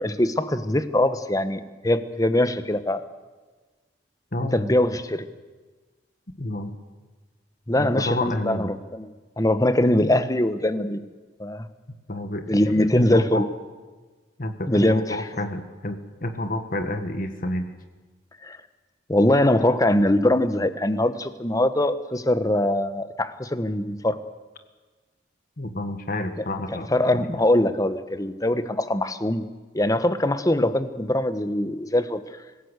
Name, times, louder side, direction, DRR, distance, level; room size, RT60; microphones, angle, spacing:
voice 1, 0.0-3.0 4.4-5.3 7.7-9.1 9.4-11.0 11.4-11.7 12.5-13.4 14.7-15.2 18.4-18.6 19.1-24.2 26.9-29.4 29.7-32.2, left 1 dB, 20° left, 12 dB, 1.1 m, -22 dB
voice 2, 4.3-4.7 6.4-6.7 7.7-8.7 12.1-13.5 14.4-17.7 25.6-27.2, left 1 dB, 50° left, 7 dB, 1.7 m, -30 dB
25.0 x 16.5 x 8.2 m, 1.3 s
head